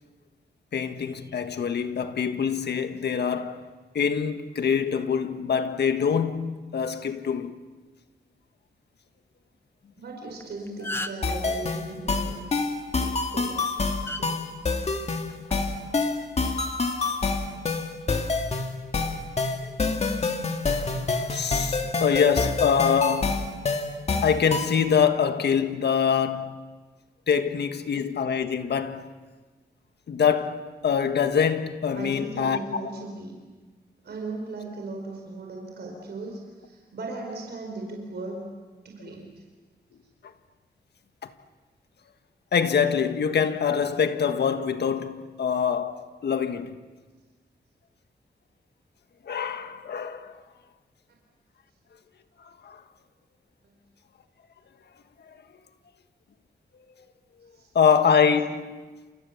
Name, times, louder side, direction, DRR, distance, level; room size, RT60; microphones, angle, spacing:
voice 1, 0.7-3.6 4.0-7.5 13.0-13.2 14.2-14.4 19.6-19.7 21.3-23.4 24.2-26.6 27.3-29.1 30.1-32.9 41.2-41.3 42.5-46.8 49.3-50.3 52.6-52.8 57.8-58.8, left 7 dB, 75° left, 1.6 m, -24 dB
voice 2, 10.0-12.4 13.3-13.6 31.9-33.4 34.0-38.4 38.8-39.3 57.5-57.7, right 2 dB, 75° right, 4.8 m, -37 dB
sound 1, 10.3-10.4 10.7-11.3 13.0-13.2 14.1-14.2 15.3-15.5, left 1 dB, 15° left, 1.1 m, -33 dB
sound 2, 11.2-24.8, left 3 dB, 40° left, 2.1 m, -27 dB
29.5 x 28.0 x 7.1 m
wide cardioid pair, 160°, 17 cm